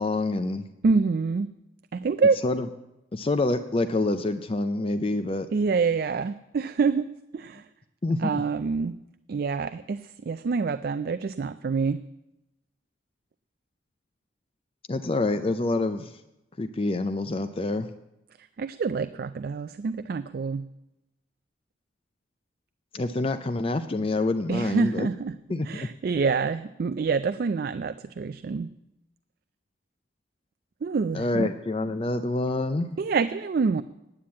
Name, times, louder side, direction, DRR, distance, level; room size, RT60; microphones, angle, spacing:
voice 1, 0.0-0.7 2.4-2.7 3.1-5.5 8.0-8.4 14.9-16.1 16.6-17.9 22.9-25.1 25.5-25.9 31.1-33.0, left 2 dB, 30° left, 8 dB, 0.4 m, -27 dB
voice 2, 0.8-1.5 1.9-2.4 5.5-7.1 7.3-7.6 8.2-9.0 9.3-12.0 18.4-20.7 24.5-25.3 25.6-28.7 30.8-31.5 33.0-33.8, right 4 dB, 50° right, 12 dB, 0.3 m, -26 dB
9.5 x 8.8 x 8.5 m, 0.91 s
head